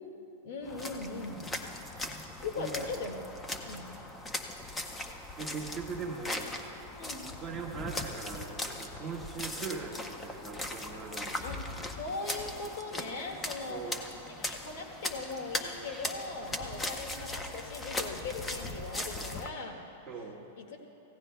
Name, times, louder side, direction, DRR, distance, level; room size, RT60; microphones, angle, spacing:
voice 1, 0.0-1.5 2.4-3.2 3.6-4.0 7.0-7.3 11.4-11.6 12.0-14.0 14.4-19.8 20.6-20.8, left 3 dB, 60° left, 3 dB, 1.9 m, -39 dB
sound 1, 0.6-19.5, left 2 dB, 10° left, 0.7 m, -39 dB
voice 2, 2.6-2.9 5.4-6.7 7.4-11.5 13.7-14.0 20.1-20.4, right 5 dB, 10° right, -4 dB, 1.6 m, -40 dB
26.5 x 16.5 x 2.3 m, 2.9 s
supercardioid pair, 155°, 0 cm